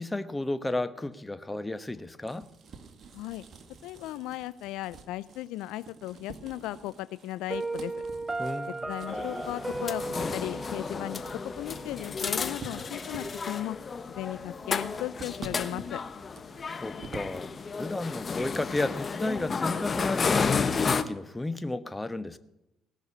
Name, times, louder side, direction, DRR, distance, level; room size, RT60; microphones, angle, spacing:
voice 1, 0.0-2.5 8.4-8.8 16.7-22.4, left 2 dB, 15° left, 1.1 m, -33 dB
sound 1, 1.9-17.4, right 4 dB, 50° right, 2.0 m, -49 dB
voice 2, 3.8-7.9 8.9-10.0 10.3-13.8 14.1-16.0, left 15 dB, 80° left, 0.5 m, -36 dB
Piano, 7.5-12.4, right 2 dB, 20° right, 0.7 m, -36 dB
sound 2, 9.1-21.0, left 5 dB, 40° left, 1.0 m, -32 dB
18.5 x 6.5 x 9.6 m
supercardioid pair, 65°, 0 cm